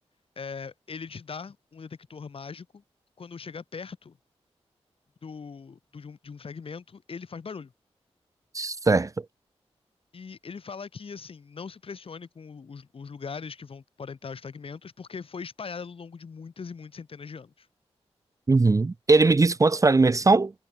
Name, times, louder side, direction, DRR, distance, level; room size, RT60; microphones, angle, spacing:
voice 1, 0.4-2.8 3.2-4.2 5.2-7.7 10.1-17.7, left 5 dB, 60° left, 1.5 m, -40 dB
voice 2, 8.5-9.2 18.5-20.5, right 3 dB, 30° right, 0.6 m, -20 dB
cardioid pair, 70°, 11 cm